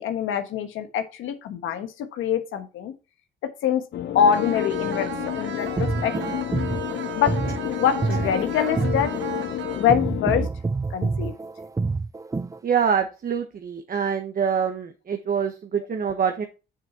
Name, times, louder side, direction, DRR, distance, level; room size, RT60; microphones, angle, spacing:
voice 1, 0.0-2.9 3.6-3.8 4.1-5.1 5.3-6.1 7.1-7.3 7.7-9.1 9.8-10.5 10.9-11.3, left 8 dB, 85° left, 8 dB, 1.3 m, -24 dB
sound 1, 3.9-10.5, left 12 dB, 65° left, 0.7 m, -30 dB
sound 2, 4.3-10.3, right 9 dB, 70° right, 1.3 m, -36 dB
sound 3, 5.6-12.6, right 4 dB, 15° right, 0.5 m, -28 dB
voice 2, 12.6-16.4, right 7 dB, 45° right, 5 dB, 1.2 m, -25 dB
6.7 x 6.5 x 4.3 m, 0.30 s
cardioid pair, 90°, 20 cm